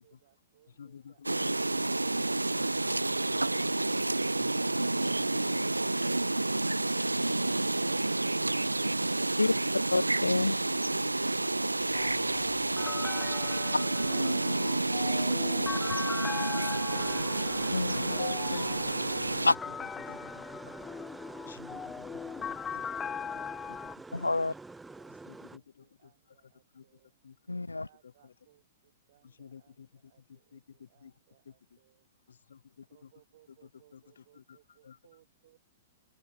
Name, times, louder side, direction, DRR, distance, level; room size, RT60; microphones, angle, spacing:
voice 1, 0.0-4.1 24.3-27.2 27.7-32.1 32.9-35.6, right 13 dB, 50° right, 7.6 m, -68 dB
voice 2, 0.8-1.5 4.3-5.8 18.4-20.7 21.4-22.8 23.7-23.8 24.1-24.2 25.2-26.1 26.4-26.8 27.2-27.6 28.0-28.3 29.2-31.1 31.4-31.5 32.3-33.1 33.9-34.6 34.8-35.0, left 7 dB, 65° left, 1.8 m, -53 dB
sound 1, 1.2-19.5, right 2 dB, 80° right, 0.4 m, -29 dB
voice 3, 9.9-10.6 17.7-18.8 24.1-24.5 27.5-27.9, left 2 dB, 80° left, 0.4 m, -30 dB
sound 2, 11.9-24.0, left 7 dB, 15° left, 0.4 m, -41 dB
sound 3, 16.9-25.6, right 3 dB, 5° right, 3.0 m, -46 dB
open air
figure-of-eight pair, 105°, 0 cm